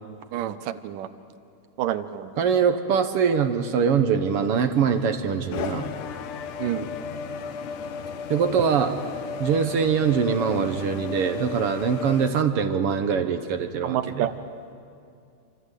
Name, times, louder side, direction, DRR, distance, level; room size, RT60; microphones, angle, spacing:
voice 1, 0.3-1.1 1.8-2.3 6.6-6.9 13.8-14.3, right 12 dB, 80° right, 12 dB, 2.5 m, -28 dB
voice 2, 2.4-5.9 8.3-9.0 9.4-14.3, right 6 dB, 65° right, 8 dB, 1.6 m, -23 dB
sound 1, 4.0-12.3, left 5 dB, 75° left, 2.7 m, -35 dB
27.5 x 26.0 x 8.3 m, 2.5 s
omnidirectional pair, 3.8 m